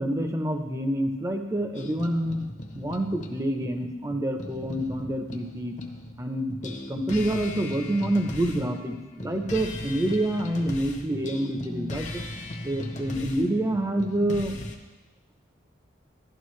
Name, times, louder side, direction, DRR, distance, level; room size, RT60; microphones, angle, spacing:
voice 1, 0.0-2.5 2.7-5.8 6.2-12.2 12.6-14.6, right 1 dB, 15° right, 5 dB, 0.7 m, -27 dB
sound 1, 1.7-6.2 6.5-14.8, left 1 dB, 40° left, 0.8 m, -38 dB
12.0 x 11.0 x 3.2 m, 1.2 s
head